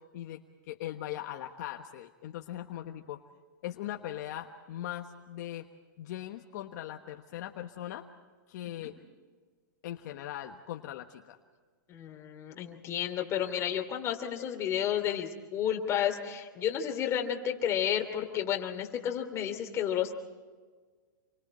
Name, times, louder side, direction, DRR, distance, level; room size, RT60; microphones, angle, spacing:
voice 1, 0.0-3.2 3.6-5.7 6.0-8.0 8.5-9.0 9.8-11.4, left 12 dB, 55° left, 4 dB, 1.3 m, -40 dB
voice 2, 11.9-20.1, left 9 dB, 25° left, 3 dB, 3.0 m, -31 dB
29.0 x 24.0 x 4.4 m, 1.5 s
hypercardioid pair, 140°, 11 cm